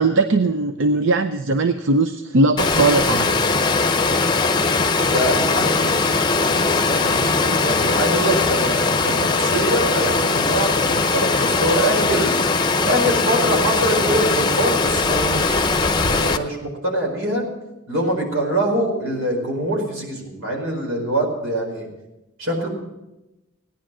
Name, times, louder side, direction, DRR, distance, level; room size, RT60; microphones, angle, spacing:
voice 1, 0.0-3.3, right 3 dB, 65° right, 8 dB, 0.6 m, -19 dB
Water, 2.6-16.4, left 3 dB, 20° left, 0.7 m, -20 dB
voice 2, 5.0-5.9 6.4-12.4 12.9-15.7 16.1-17.4 17.9-21.9 22.4-22.7, right 1 dB, 90° right, 1 dB, 4.8 m, -24 dB
17.0 x 10.5 x 6.1 m, 0.97 s
head